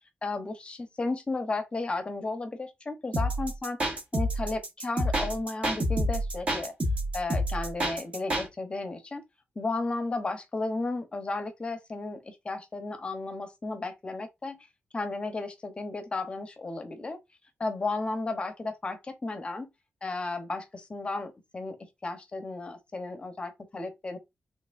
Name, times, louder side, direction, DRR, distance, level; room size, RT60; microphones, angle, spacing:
voice 1, 0.2-3.8 4.1-6.7 7.1-9.2 9.6-14.7 14.9-17.2 17.6-19.7 20.0-24.2, left 3 dB, 25° left, 0.8 m, -34 dB
sound 1, 3.1-8.5, equal, 30° right, 1.4 m, -28 dB
4.2 x 3.3 x 2.5 m
wide cardioid pair, 160°, 4 cm